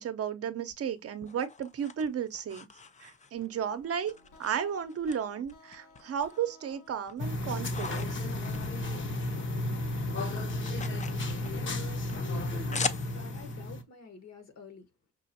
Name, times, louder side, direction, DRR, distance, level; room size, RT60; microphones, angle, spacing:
voice 1, 0.0-2.7 3.0-4.1 4.4-8.1, right 8 dB, 50° right, 0.7 m, -34 dB
sound 1, 0.7-3.6 4.1-5.2 5.5-6.5 6.9-9.5 9.7-13.5, left 5 dB, 25° left, 0.5 m, -41 dB
sound 2, 3.4-11.0, left 2 dB, 80° left, 1.9 m, -58 dB
sound 3, 7.2-13.8, left 1 dB, 40° left, 0.9 m, -33 dB
voice 2, 11.5-14.9, left 4 dB, 60° left, 1.4 m, -48 dB
6.1 x 2.4 x 2.7 m
cardioid pair, 90°, 30 cm